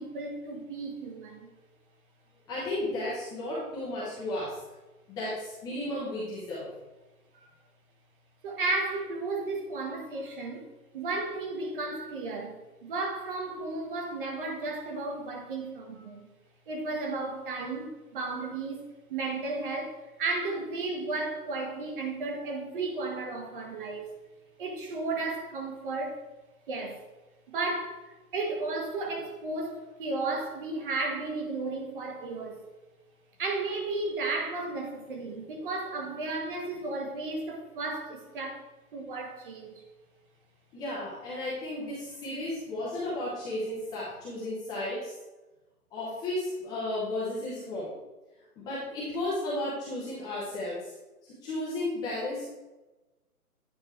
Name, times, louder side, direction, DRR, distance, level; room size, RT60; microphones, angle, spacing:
voice 1, 0.0-1.5 7.3-7.4 8.4-10.7 10.9-16.2 16.7-17.9 18.1-18.8 19.1-24.1 24.6-26.2 26.7-27.0 27.5-32.6 33.4-38.6 38.9-39.8, right 3 dB, 35° right, 1.2 m, -34 dB
voice 2, 2.5-4.6 5.1-6.7 40.7-45.1 45.9-47.9 48.6-50.9 51.4-52.5, left 1 dB, 10° left, 0.8 m, -34 dB
9.1 x 3.3 x 4.3 m
figure-of-eight pair, 140°, 46 cm